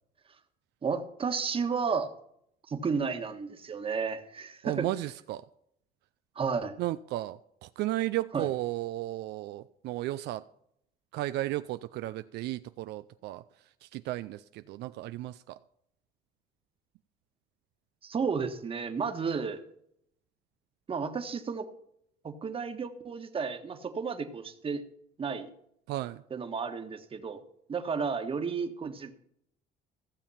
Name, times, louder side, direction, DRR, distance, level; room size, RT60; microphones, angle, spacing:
voice 1, 0.8-2.1 2.7-4.9 6.3-6.8 8.3-8.5 18.0-19.6 20.9-21.7 22.2-24.8 25.2-25.5 26.3-27.4 27.7-29.1, right 5 dB, 35° right, 7 dB, 1.4 m, -32 dB
voice 2, 4.6-5.5 6.8-10.4 11.1-13.4 13.8-15.6 25.9-26.2, right 16 dB, 80° right, 12 dB, 0.5 m, -34 dB
15.0 x 7.0 x 5.7 m, 0.71 s
cardioid pair, 110°, 17 cm